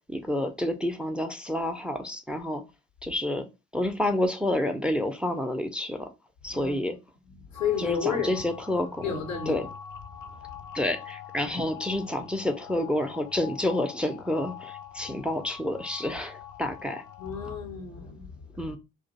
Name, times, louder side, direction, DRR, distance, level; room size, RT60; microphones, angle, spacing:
voice 1, 0.1-2.6 3.0-3.5 3.7-6.1 6.4-7.0 7.8-9.7 10.7-17.0 18.6-18.8, left 1 dB, 5° right, 0.4 m, -29 dB
voice 2, 7.2-8.5 9.0-9.7 17.2-18.8, left 6 dB, 85° left, 0.8 m, -32 dB
sound 1, 7.5-17.6, left 9 dB, 55° left, 0.5 m, -44 dB
2.4 x 2.2 x 3.9 m
figure-of-eight pair, 40°, 38 cm